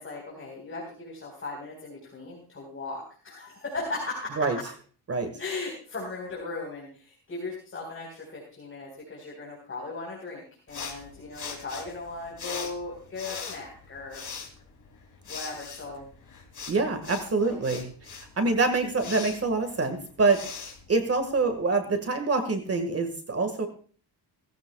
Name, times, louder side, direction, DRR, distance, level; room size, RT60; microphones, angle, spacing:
voice 1, 0.0-4.5 5.4-14.2 15.3-16.1 17.4-17.6, left 3 dB, 30° left, -2 dB, 4.4 m, -37 dB
sound 1, 10.7-21.6, left 5 dB, 50° left, 2.9 m, -41 dB
voice 2, 16.7-17.8 18.4-23.7, right 3 dB, 35° right, 6 dB, 1.8 m, -26 dB
18.5 x 15.0 x 2.3 m, 0.42 s
wide cardioid pair, 155°, 41 cm